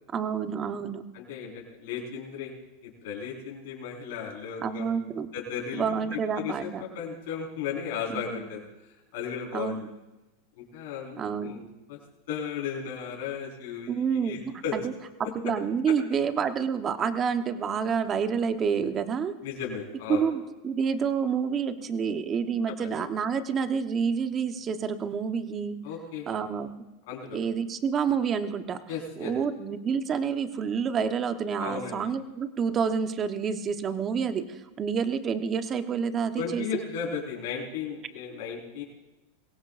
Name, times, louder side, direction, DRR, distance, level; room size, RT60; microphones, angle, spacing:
voice 1, 0.1-1.0 4.6-5.3 5.7-6.8 8.1-8.4 9.5-9.9 11.2-11.6 13.9-14.4 14.7-14.8 15.4-19.3 20.1-25.8 26.3-26.7 27.3-28.8 29.2-36.8, right 6 dB, 30° right, 9 dB, 1.1 m, -28 dB
voice 2, 1.1-2.5 2.8-5.0 5.3-10.0 10.6-11.6 11.9-12.0 12.3-14.8 19.4-20.2 22.7-22.9 25.8-26.4 27.1-27.4 28.9-29.3 31.6-32.0 36.3-38.8, left 7 dB, 70° left, -3 dB, 4.8 m, -35 dB
22.5 x 17.0 x 2.6 m, 1.0 s
hypercardioid pair, 120°, 0 cm